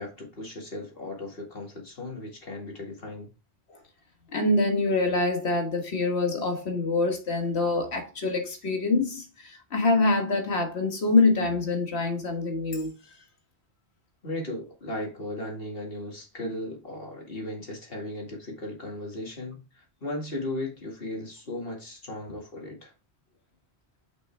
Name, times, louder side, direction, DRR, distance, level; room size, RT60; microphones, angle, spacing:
voice 1, 0.0-3.3 14.2-22.9, left 1 dB, 60° left, 2.3 m, -36 dB
voice 2, 4.3-12.9, left 3 dB, 80° left, 1.7 m, -25 dB
6.1 x 5.7 x 3.4 m
omnidirectional pair, 1.1 m